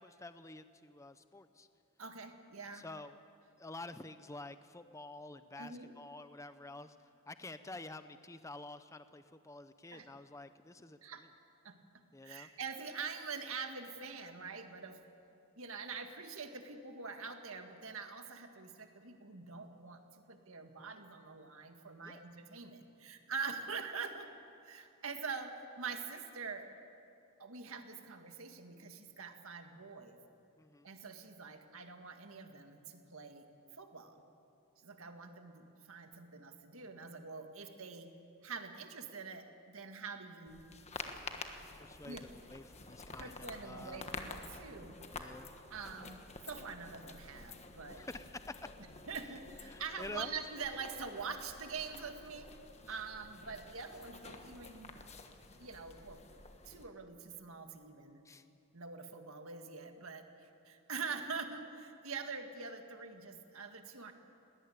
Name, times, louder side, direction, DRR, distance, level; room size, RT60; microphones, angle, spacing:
voice 1, 0.0-1.7 2.7-3.2 3.6-7.0 7.3-11.0 12.1-12.5 22.0-22.2 30.6-30.9 41.8-44.1 45.1-45.5 47.9-48.5 49.7-50.3 58.2-58.4, left 2 dB, 15° left, 11 dB, 0.5 m, -49 dB
voice 2, 2.0-2.9 5.6-5.9 9.9-10.1 11.0-11.2 11.6-11.8 12.2-15.0 15.6-20.0 20.3-24.3 24.6-26.7 27.4-30.2 30.8-33.5 33.8-34.2 34.8-38.1 38.4-40.6 42.1-42.3 43.1-45.0 45.7-48.0 49.1-52.5 52.9-54.9 55.6-56.2 56.7-58.2 58.7-64.1, right 5 dB, 75° right, 6 dB, 1.8 m, -45 dB
sound 1, 40.5-56.8, left 3 dB, 30° left, 1.4 m, -50 dB
21.0 x 18.0 x 8.6 m, 2.6 s
head